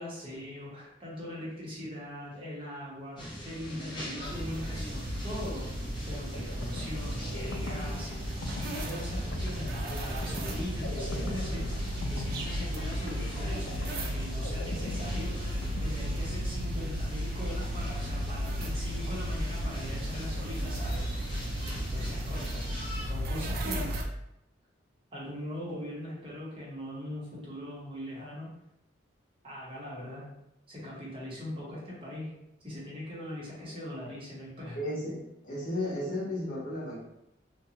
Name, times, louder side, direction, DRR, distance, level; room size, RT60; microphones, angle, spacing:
voice 1, 0.0-5.7 6.1-8.3 8.8-21.3 21.9-22.7 23.0-23.9 25.1-28.5 29.4-30.3 30.7-32.3 32.6-34.8, left 1 dB, 30° right, -6 dB, 0.9 m, -41 dB
sound 1, 3.2-23.1, equal, 25° left, 0.7 m, -42 dB
sound 2, 4.2-24.0, equal, 50° right, 0.4 m, -34 dB
sound 3, 6.3-16.9, left 2 dB, 70° left, 0.4 m, -42 dB
voice 2, 34.7-37.0, left 1 dB, 45° left, -6 dB, 1.0 m, -34 dB
2.5 x 2.2 x 2.8 m, 0.84 s
head